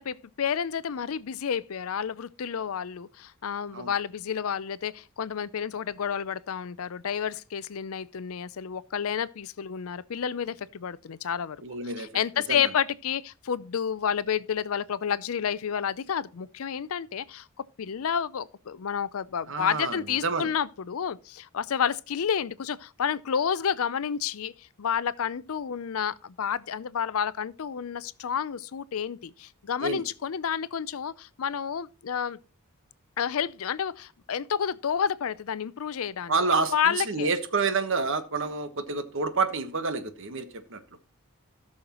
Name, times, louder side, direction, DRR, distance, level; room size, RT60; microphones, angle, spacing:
voice 1, 0.0-11.6 11.8-17.5 17.8-32.4 33.2-36.4 36.7-37.3, left 7 dB, 70° left, 0.5 m, -30 dB
voice 2, 11.6-12.1 12.5-12.6 19.5-20.5 29.8-30.0 36.3-41.0, right 4 dB, 60° right, 1.3 m, -28 dB
16.5 x 6.4 x 3.0 m
head